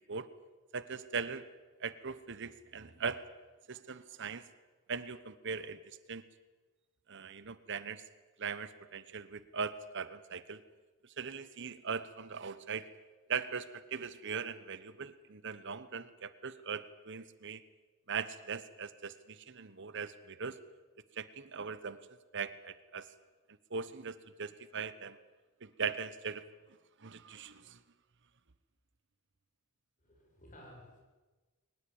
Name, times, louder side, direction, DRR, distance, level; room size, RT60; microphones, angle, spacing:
voice 1, 0.7-1.5 1.8-3.2 3.7-4.5 4.9-6.2 7.1-8.1 8.4-10.6 11.0-12.9 13.3-17.6 18.1-20.6 21.1-22.0 22.3-23.1 23.7-25.2 25.6-26.4 27.0-27.8, right 5 dB, 55° right, 14 dB, 1.0 m, -40 dB
voice 2, 30.0-31.0, equal, 35° left, 0 dB, 7.9 m, -55 dB
22.5 x 19.5 x 8.8 m, 1.3 s
head